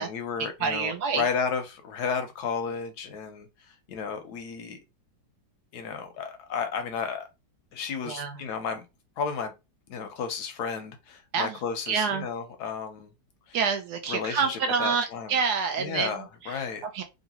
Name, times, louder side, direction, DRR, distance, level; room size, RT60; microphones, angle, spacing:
voice 1, 0.0-4.8 5.7-7.3 7.7-8.8 9.2-9.5 9.9-13.1 13.5-13.6 14.1-15.3 15.8-16.8, left 6 dB, 70° left, 1.0 m, -33 dB
voice 2, 0.6-1.2 8.0-8.4 11.3-11.6 11.9-12.3 13.5-16.6 16.9-17.0, right 5 dB, 70° right, 1.0 m, -27 dB
3.0 x 2.6 x 2.8 m
omnidirectional pair, 2.0 m